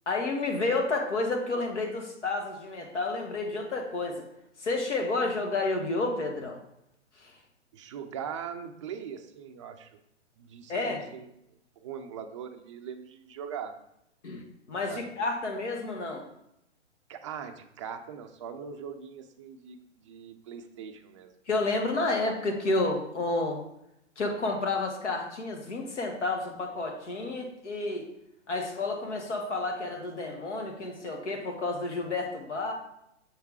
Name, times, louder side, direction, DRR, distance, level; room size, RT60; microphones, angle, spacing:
voice 1, 0.1-4.2 4.6-6.6 7.2-7.3 10.7-11.0 14.2-14.4 14.7-16.2 21.5-23.6 24.2-28.1 28.5-32.7, left 2 dB, 70° left, 3 dB, 1.5 m, -30 dB
voice 2, 7.7-10.0 10.4-11.3 11.8-13.8 14.7-15.1 17.1-21.3, right 7 dB, 25° right, 6 dB, 0.4 m, -41 dB
6.6 x 3.5 x 4.6 m, 0.78 s
hypercardioid pair, 135°, 36 cm